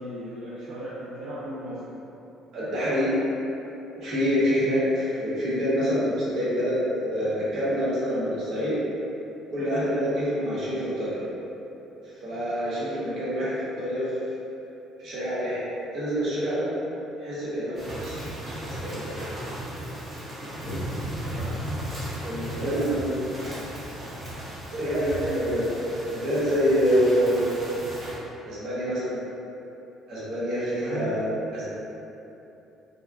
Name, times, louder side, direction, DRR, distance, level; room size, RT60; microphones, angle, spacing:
voice 1, 0.0-2.0 21.1-21.6 22.5-23.1 24.9-25.7 30.8-31.2, equal, 70° right, -10 dB, 0.4 m, -36 dB
voice 2, 2.5-3.2 3.9-8.7 9.5-11.2 12.2-14.0 15.0-15.6 15.9-16.7 17.2-18.2 18.5-19.3 22.2-23.2 24.7-25.1 25.3-25.7 26.1-27.5 28.4-29.2 30.1-31.7, equal, 55° right, -10 dB, 1.0 m, -26 dB
sound 1, 17.8-28.1, right 1 dB, 20° right, 0.7 m, -35 dB
3.4 x 2.1 x 2.3 m, 3.0 s
cardioid pair, 170°, 0 cm